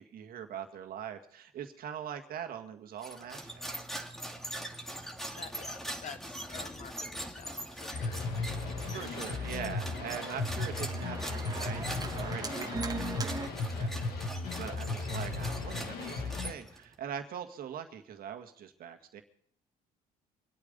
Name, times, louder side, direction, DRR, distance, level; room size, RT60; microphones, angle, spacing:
voice 1, 0.0-3.8 8.9-19.2, right 9 dB, 65° right, 5 dB, 1.9 m, -42 dB
sound 1, 3.0-16.9, right 1 dB, ahead, 2.2 m, -42 dB
voice 2, 5.4-8.2, left 8 dB, 50° left, 11 dB, 0.8 m, -48 dB
Organ, 7.7-13.5, right 4 dB, 25° right, 1.6 m, -41 dB
sound 2, 7.9-16.5, left 3 dB, 65° left, 2.1 m, -36 dB
24.5 x 8.6 x 5.4 m, 0.65 s
supercardioid pair, 80°, 16 cm